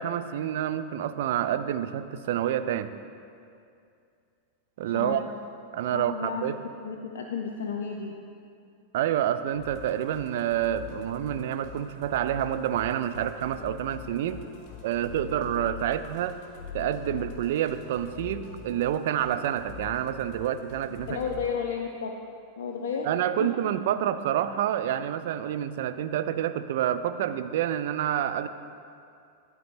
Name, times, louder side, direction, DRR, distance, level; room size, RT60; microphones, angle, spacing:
voice 1, 0.0-2.9 4.8-5.3 5.7-6.6 8.9-14.4 14.8-16.4 16.7-21.2 23.0-28.5, right 10 dB, 55° right, 11 dB, 0.3 m, -28 dB
voice 2, 4.8-5.2 5.9-6.4 6.8-8.1 21.1-22.2 22.6-23.1 23.4-23.5, left 6 dB, 60° left, 2 dB, 0.4 m, -32 dB
Musical instrument, 9.5-21.5, left 6 dB, 35° left, 1.3 m, -44 dB
12.0 x 4.0 x 4.3 m, 2.4 s
figure-of-eight pair, 90°, 0 cm